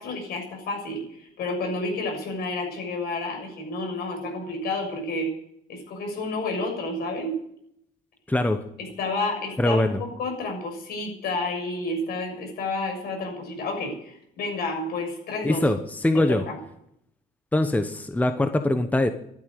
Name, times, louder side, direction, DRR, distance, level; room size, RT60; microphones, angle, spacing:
voice 1, 0.0-5.3 5.7-7.3 8.8-15.6 16.1-16.6, left 2 dB, 70° left, 3 dB, 6.6 m, -30 dB
voice 2, 8.3-8.6 9.6-10.0 15.4-16.5 17.5-19.1, left 1 dB, 10° left, 8 dB, 1.0 m, -22 dB
12.5 x 10.5 x 9.4 m, 0.74 s
cardioid pair, 110°, 17 cm